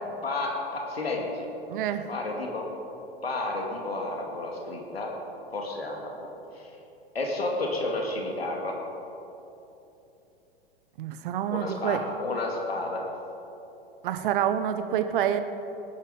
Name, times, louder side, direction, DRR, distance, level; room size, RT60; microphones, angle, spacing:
voice 1, 0.2-1.5 2.1-2.7 3.2-5.2 5.5-6.3 6.6-6.7 7.1-8.8 11.5-13.1, left 2 dB, 85° left, 1 dB, 2.4 m, -31 dB
voice 2, 1.7-2.1 11.0-12.0 14.0-15.4, right 10 dB, 60° right, 9 dB, 1.1 m, -27 dB
20.0 x 10.0 x 5.1 m, 3.0 s
figure-of-eight pair, 95°, 30 cm